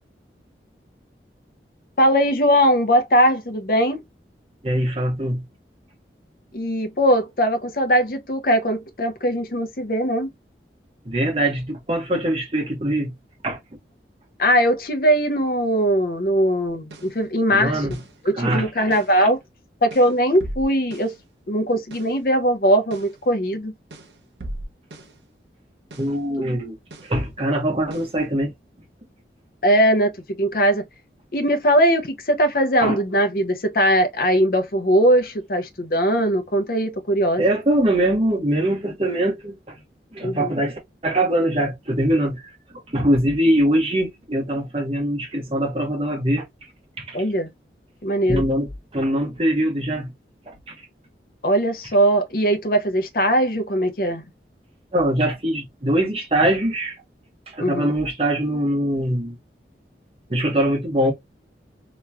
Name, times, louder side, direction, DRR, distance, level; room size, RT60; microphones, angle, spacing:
voice 1, 2.0-4.0 6.5-10.3 14.4-18.0 18.2-19.4 19.8-21.1 21.5-23.7 29.6-30.8 31.3-37.4 40.2-40.5 47.1-47.5 48.0-48.4 51.4-54.2 57.6-57.9, equal, 55° left, 0.7 m, -20 dB
voice 2, 4.6-5.5 11.0-13.1 13.4-13.6 17.5-18.0 18.4-18.7 19.2-19.3 26.0-26.7 27.0-28.5 32.8-33.0 37.4-39.8 40.1-42.5 42.9-46.4 47.0-47.2 48.3-50.1 50.5-50.7 54.9-57.0 57.5-59.4 60.3-61.1, right 1 dB, 35° right, 1.1 m, -22 dB
sound 1, 16.7-17.2 17.9-18.2 18.9-19.2 19.9-21.2 21.9-22.2 22.9-23.2 23.9-25.2 25.9-26.2 26.9-27.2 27.9-28.2, right 1 dB, 80° right, 0.8 m, -38 dB
3.0 x 3.0 x 2.3 m
head